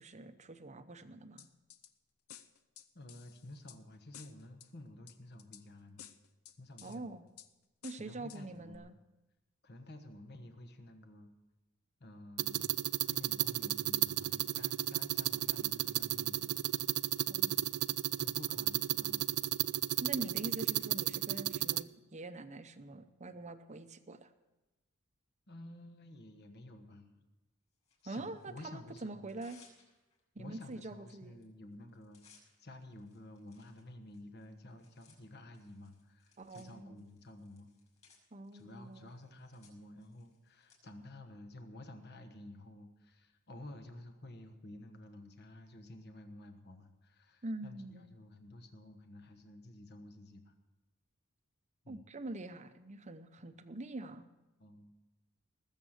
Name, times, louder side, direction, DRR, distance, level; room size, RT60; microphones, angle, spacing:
voice 1, 0.0-1.5 6.8-7.2 7.8-9.0 17.3-17.7 20.0-24.3 28.1-29.6 30.3-31.4 36.4-37.0 38.3-39.1 47.4-48.1 51.9-54.3, right 2 dB, 30° right, 10 dB, 0.8 m, -45 dB
sound 1, 1.4-1.9 2.3-3.8 4.1-4.7 5.1-5.6 6.0-7.0 7.4-7.5 7.8-8.4 8.7-8.8, left 10 dB, 80° left, 0.8 m, -54 dB
voice 2, 2.9-6.0 6.6-7.1 7.9-8.9 9.6-11.3 12.0-16.5 18.2-19.3 25.5-27.2 28.0-29.3 30.4-37.7 38.5-50.5 51.8-52.0 54.6-54.9, left 1 dB, 50° left, 7 dB, 1.3 m, -52 dB
sound 2, 12.4-21.8, right 14 dB, 85° right, 0.4 m, -33 dB
Tearing, 27.8-28.7 29.1-30.2 30.7-30.8 31.1-31.4 31.7-40.8, left 5 dB, 30° left, 5.5 m, -67 dB
20.0 x 7.4 x 6.6 m, 1.1 s
head